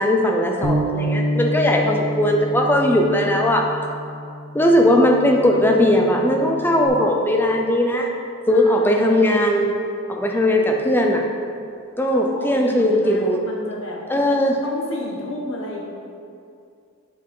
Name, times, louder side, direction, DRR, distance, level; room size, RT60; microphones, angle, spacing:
voice 1, 0.0-3.7 4.5-8.1 8.5-9.8 10.1-11.3 12.0-13.4 14.1-14.6, left 1 dB, 10° left, 1 dB, 0.5 m, -18 dB
Bass guitar, 0.6-6.9, equal, 45° right, 0.7 m, -28 dB
voice 2, 8.5-9.2 12.1-14.0 14.6-15.9, left 1 dB, 60° left, -2 dB, 1.2 m, -33 dB
7.7 x 5.4 x 3.7 m, 2.5 s
head